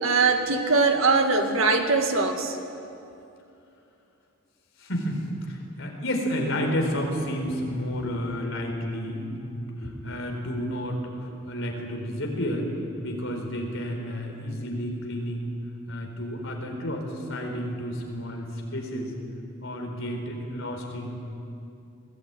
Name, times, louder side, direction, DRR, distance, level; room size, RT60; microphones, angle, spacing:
voice 1, 0.0-2.6, right 3 dB, 70° right, 5 dB, 1.9 m, -22 dB
voice 2, 4.8-12.7 13.0-15.5 15.9-18.4 18.7-19.1 19.6-21.2, equal, 60° left, 1 dB, 4.2 m, -31 dB
21.5 x 17.0 x 9.1 m, 2.7 s
head